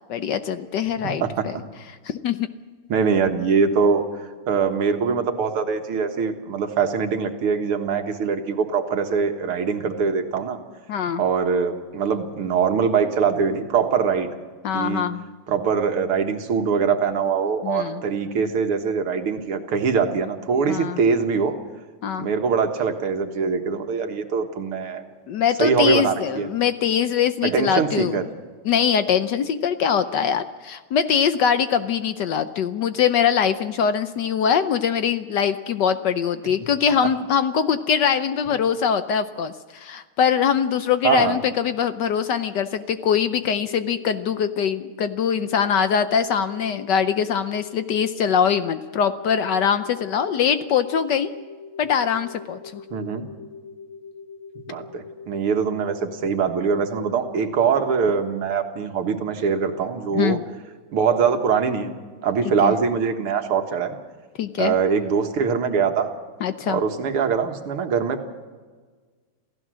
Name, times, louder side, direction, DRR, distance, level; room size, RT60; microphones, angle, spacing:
voice 1, 0.1-1.5 2.0-2.5 10.9-11.2 14.6-15.2 17.6-18.0 20.7-21.0 22.0-22.3 25.3-28.2 28.7-51.3 51.8-52.8 60.1-60.4 62.6-62.7 64.4-64.7 66.4-66.8, left 7 dB, 65° left, 11 dB, 1.2 m, -22 dB
voice 2, 2.9-4.0 4.5-10.6 11.2-14.3 14.7-15.0 15.5-21.6 22.2-25.0 25.6-26.5 27.4-28.2 41.0-41.4 52.9-53.3 54.6-60.4 60.9-61.9 62.2-64.0 64.6-66.1 66.7-68.2, right 6 dB, 85° right, 6 dB, 2.4 m, -22 dB
sound 1, 43.4-57.7, left 5 dB, 30° left, 6.7 m, -42 dB
27.5 x 15.5 x 6.3 m, 1.5 s
omnidirectional pair, 2.4 m